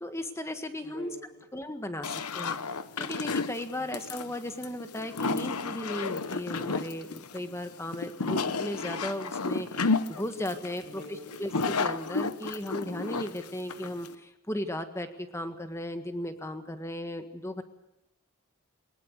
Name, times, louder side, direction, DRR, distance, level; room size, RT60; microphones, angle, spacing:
voice 1, 0.0-1.1 1.5-2.6 3.0-11.0 11.4-17.6, left 1 dB, 10° left, 8 dB, 1.6 m, -36 dB
voice 2, 0.8-1.4 3.8-3.9 10.8-11.5, left 1 dB, 40° left, -2 dB, 5.5 m, -46 dB
sound 1, 2.0-14.1, left 4 dB, 90° left, 1.1 m, -32 dB
22.0 x 20.0 x 8.1 m, 0.84 s
head